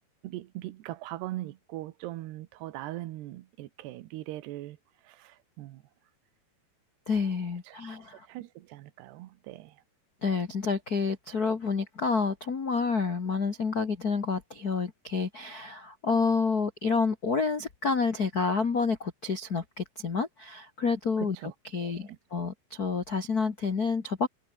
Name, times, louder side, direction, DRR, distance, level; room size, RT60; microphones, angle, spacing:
voice 1, 0.2-4.8 5.0-5.8 7.7-9.8 21.2-22.2, right 16 dB, 85° right, 3.1 m, -41 dB
voice 2, 7.1-8.3 10.2-21.3 21.7-24.3, left 4 dB, 75° left, 0.8 m, -29 dB
omnidirectional pair, 4.8 m